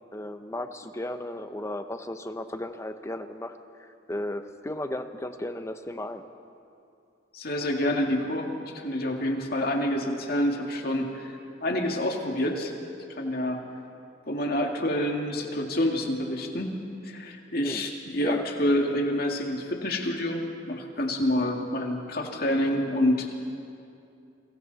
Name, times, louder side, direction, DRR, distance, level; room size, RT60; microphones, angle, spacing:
voice 1, 0.0-3.5 3.8-6.2 17.6-17.8 18.2-18.4, left 1 dB, 15° left, 8 dB, 0.8 m, -35 dB
voice 2, 7.3-8.5 8.7-11.3 11.6-12.7 13.2-13.6 14.3-16.8 17.0-23.3, left 1 dB, 55° left, 1 dB, 2.3 m, -27 dB
28.5 x 23.0 x 4.2 m, 2.6 s
head